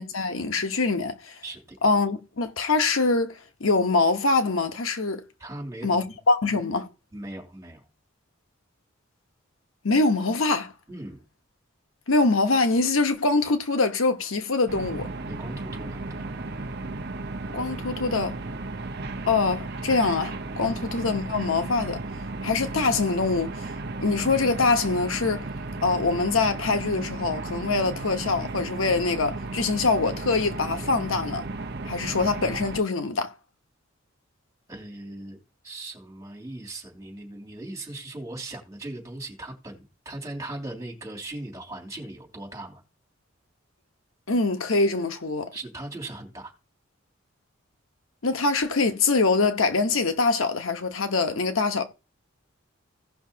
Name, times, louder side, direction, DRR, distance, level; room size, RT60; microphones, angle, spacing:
voice 1, 0.0-1.4 1.8-5.2 5.8-6.9 9.8-10.7 12.1-15.1 17.5-18.3 19.3-22.0 22.4-23.7 24.0-25.5 25.8-31.5 31.8-33.3 44.3-45.5 48.2-51.8, left 3 dB, 85° left, 1.1 m, -24 dB
voice 2, 1.4-1.9 5.4-6.2 7.1-7.8 10.9-11.2 15.3-16.2 20.6-20.7 34.7-42.8 45.5-46.5, right 2 dB, 15° right, 3.0 m, -39 dB
sound 1, 14.7-32.8, right 2 dB, 50° right, 0.8 m, -34 dB
17.0 x 6.0 x 2.8 m
head